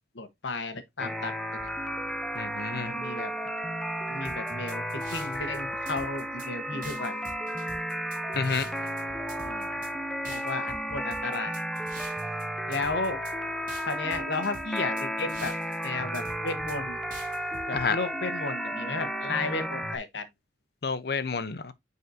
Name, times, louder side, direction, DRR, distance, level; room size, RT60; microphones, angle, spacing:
voice 1, 0.1-1.3 1.6-1.7 2.9-3.3 4.1-7.2 9.4-9.7 10.3-11.6 12.7-13.2 13.9-15.5 15.8-17.0 17.7-20.3, left 3 dB, 75° left, 1.1 m, -33 dB
sound 1, 1.0-20.0, equal, ahead, 0.6 m, -33 dB
voice 2, 2.4-2.9 8.4-8.7 17.7-18.0 20.8-21.7, left 5 dB, 55° left, 0.6 m, -29 dB
sound 2, 4.2-5.6 5.9-6.5 6.8-9.0 9.3-9.9 10.2-12.4 12.7-13.3 13.7-15.9 16.1-16.8 17.1-17.9, right 3 dB, 45° right, 2.2 m, -45 dB
9.1 x 4.1 x 2.6 m
head